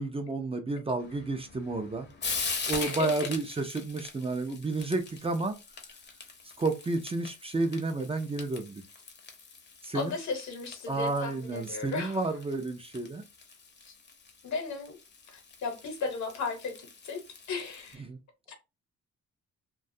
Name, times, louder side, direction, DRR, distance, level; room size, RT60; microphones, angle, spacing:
voice 1, 0.0-2.1 2.7-5.5 6.6-8.8 9.8-10.1 10.9-13.2 18.1-18.2, right 3 dB, 20° right, 0.4 m, -31 dB
Frying (food), 1.0-17.9, left 4 dB, 35° left, 0.7 m, -42 dB
voice 2, 2.8-3.3 9.9-12.2 13.9-14.0 14.4-15.0 15.3-17.2 17.5-18.0 18.5-18.6, left 4 dB, 65° left, 0.9 m, -35 dB
2.4 x 2.3 x 2.6 m
cardioid pair, 90°, 30 cm